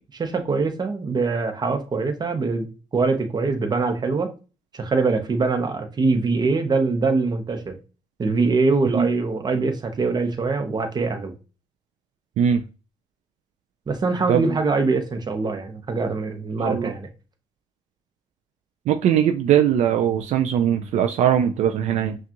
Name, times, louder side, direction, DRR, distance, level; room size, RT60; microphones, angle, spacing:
voice 1, 0.1-4.3 4.7-7.8 8.2-11.3 13.9-17.1, right 4 dB, 35° right, 0.9 m, -23 dB
voice 2, 16.6-16.9 18.9-22.2, right 9 dB, 70° right, 0.4 m, -20 dB
5.8 x 2.4 x 2.9 m
cardioid pair, 100°, 12 cm